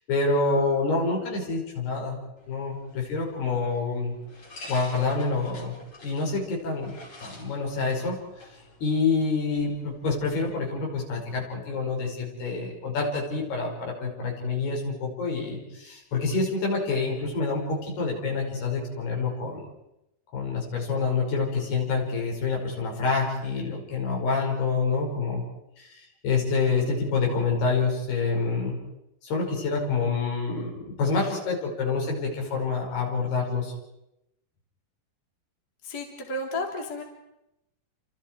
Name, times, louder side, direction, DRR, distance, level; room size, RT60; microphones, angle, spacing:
voice 1, 0.1-2.2 2.5-4.1 4.7-5.7 6.0-6.9 7.2-8.2 8.8-19.7 20.3-25.4 25.8-28.8 29.2-33.7, left 4 dB, 70° left, -1 dB, 7.6 m, -27 dB
sound 1, 2.4-10.3, left 2 dB, 40° left, 5.9 m, -49 dB
voice 2, 35.8-37.0, left 1 dB, 25° left, 1 dB, 3.7 m, -32 dB
30.0 x 27.0 x 4.8 m, 0.87 s
omnidirectional pair, 4.8 m